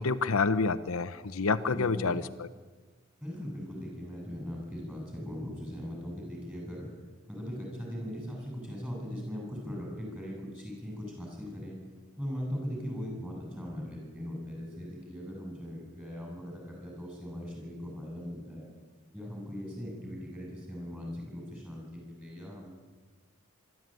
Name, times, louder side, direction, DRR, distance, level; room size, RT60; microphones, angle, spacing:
voice 1, 0.0-2.5, left 4 dB, 75° left, 11 dB, 0.8 m, -28 dB
voice 2, 1.7-2.2 3.2-6.9 7.3-11.8 12.2-18.7 19.1-22.7, equal, 10° right, -1 dB, 7.8 m, -39 dB
24.5 x 12.5 x 9.2 m, 1.4 s
head